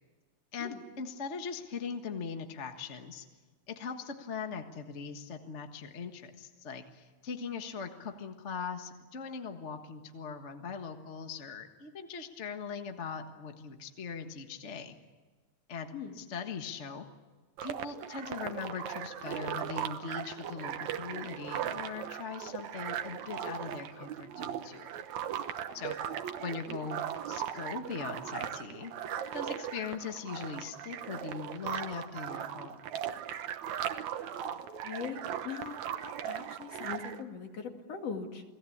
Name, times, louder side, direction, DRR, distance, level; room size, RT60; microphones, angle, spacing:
voice 1, 0.5-3.2 3.7-15.0 15.7-17.0 17.6-24.9 25.7-26.0 26.4-28.9 29.3-32.8, left 5 dB, 40° left, 6 dB, 1.1 m, -40 dB
sound 1, 17.6-37.2, right 9 dB, 70° right, 2.3 m, -38 dB
voice 2, 34.8-35.2 35.4-35.8 36.0-38.4, left 6 dB, 55° left, 4 dB, 3.2 m, -40 dB
30.0 x 19.0 x 8.6 m, 1.4 s
omnidirectional pair, 3.6 m